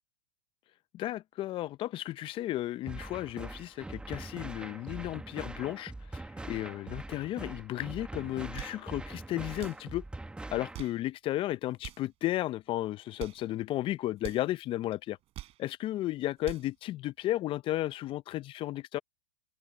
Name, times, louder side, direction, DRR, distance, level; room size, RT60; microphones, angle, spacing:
voice 1, 0.9-10.0 10.5-15.2 15.6-19.0, left 15 dB, 30° left, 0.7 m, -34 dB
sound 1, 2.9-10.9, right 2 dB, 5° right, 1.4 m, -43 dB
sound 2, 8.3-8.9 9.5-9.9 10.6-11.1 11.7-12.1 13.0-13.5 14.2-14.5 15.1-15.7 16.2-16.7, right 15 dB, 35° right, 4.8 m, -45 dB
hypercardioid pair, 115°, 17 cm